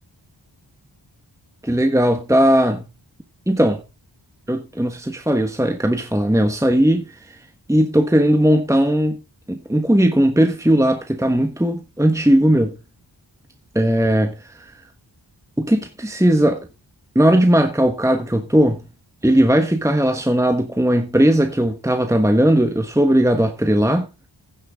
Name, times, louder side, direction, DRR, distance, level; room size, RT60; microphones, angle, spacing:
voice 1, 1.6-2.8 3.5-3.8 4.5-7.4 7.7-9.2 9.5-12.7 13.7-14.7 15.6-16.7 17.1-18.8 19.2-24.1, equal, 5° right, 1.3 m, -17 dB
16.0 x 6.3 x 3.5 m
wide cardioid pair, 70°, 44 cm